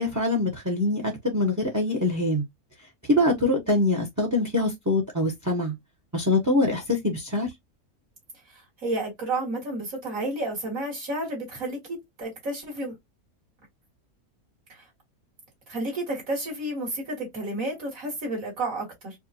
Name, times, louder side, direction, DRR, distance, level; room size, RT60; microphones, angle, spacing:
voice 1, 0.0-2.4 3.1-5.8 6.1-7.5, left 2 dB, 15° right, 0.7 m, -24 dB
voice 2, 8.5-13.0 14.7-14.8 15.7-19.1, right 2 dB, 65° right, 2.5 m, -31 dB
4.6 x 2.5 x 2.8 m
omnidirectional pair, 1.6 m